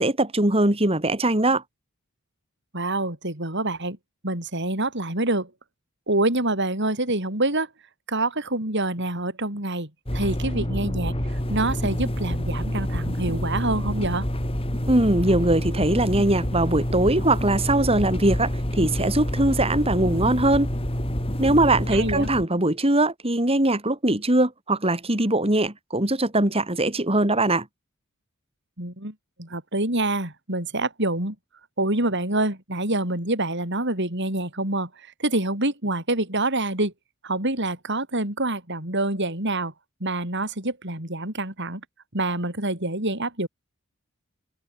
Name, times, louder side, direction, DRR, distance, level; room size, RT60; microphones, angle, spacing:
voice 1, 0.0-1.6 14.9-20.7 21.4-27.7, right 1 dB, 25° right, 4.0 m, -21 dB
voice 2, 2.7-4.0 4.2-5.5 6.1-7.7 8.1-11.1 11.5-14.3 21.9-22.3 28.8-31.4 31.8-34.9 35.2-36.9 37.2-39.7 40.0-41.8 42.1-43.5, right 2 dB, 55° right, 8.0 m, -26 dB
sound 1, 10.0-22.4, equal, 25° left, 4.4 m, -27 dB
open air
head